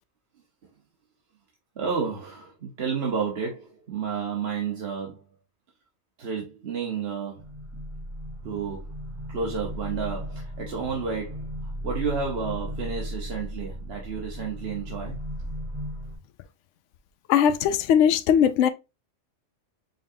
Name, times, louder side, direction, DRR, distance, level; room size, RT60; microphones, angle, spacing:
voice 1, 1.8-5.2 6.2-7.4 8.4-8.8 9.3-15.5, right 5 dB, 55° right, 1.2 m, -31 dB
sound 1, 7.4-16.2, equal, 25° right, 1.8 m, -36 dB
voice 2, 17.3-18.7, left 8 dB, 70° left, 0.9 m, -19 dB
5.2 x 3.6 x 2.6 m
omnidirectional pair, 1.3 m